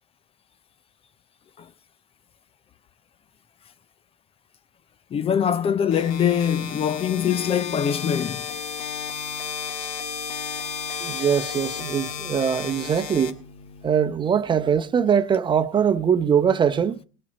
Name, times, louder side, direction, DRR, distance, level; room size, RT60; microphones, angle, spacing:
voice 1, 5.1-8.5, left 8 dB, 30° left, 0.7 m, -23 dB
sound 1, 5.9-13.9, left 7 dB, 75° left, 1.8 m, -33 dB
voice 2, 11.0-13.4 13.8-17.0, right 7 dB, 25° right, 0.9 m, -22 dB
20.0 x 8.5 x 4.1 m
hypercardioid pair, 90°, 18 cm